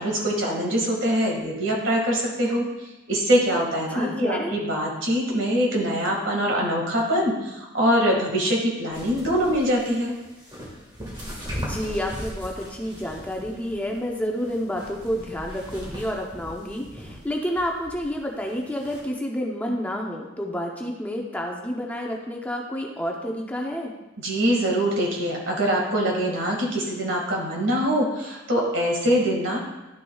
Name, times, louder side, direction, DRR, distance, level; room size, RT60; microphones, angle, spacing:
voice 1, 0.0-2.6 3.1-10.1 24.2-29.6, equal, 70° right, -1 dB, 2.0 m, -23 dB
voice 2, 3.9-4.5 11.5-23.9, equal, 5° left, 0 dB, 0.7 m, -29 dB
sound 1, 8.9-19.0, equal, 25° right, 1.7 m, -39 dB
11.0 x 6.6 x 2.4 m, 1.1 s
head